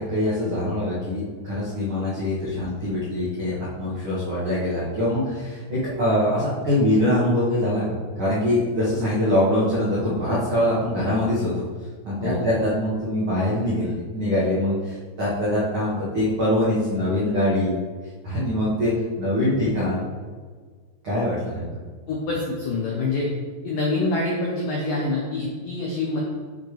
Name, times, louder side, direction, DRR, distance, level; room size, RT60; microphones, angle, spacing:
voice 1, 0.0-11.6 12.0-17.7 18.2-20.0 21.0-21.7, left 1 dB, 85° right, -9 dB, 1.1 m, -23 dB
voice 2, 22.1-23.3 23.6-26.2, left 2 dB, 85° left, -2 dB, 1.9 m, -26 dB
8.2 x 6.4 x 3.4 m, 1.5 s
omnidirectional pair, 5.4 m